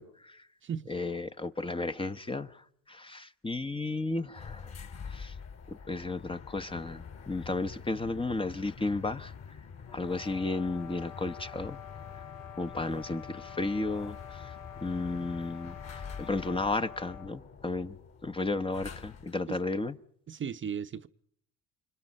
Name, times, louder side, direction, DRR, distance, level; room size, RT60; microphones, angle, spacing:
voice 1, 0.0-0.5 0.9-4.7 5.0-5.3 5.9-9.3 9.9-11.8 12.6-14.5 14.8-20.0, left 3 dB, 15° left, 1.0 m, -34 dB
sound 1, 4.3-19.5, left 6 dB, 45° left, 4.1 m, -46 dB
sound 2, 9.9-17.4, left 9 dB, 70° left, 3.4 m, -47 dB
voice 2, 20.3-21.1, right 7 dB, 35° right, 0.9 m, -36 dB
29.0 x 25.0 x 5.4 m
cardioid pair, 105°, 35 cm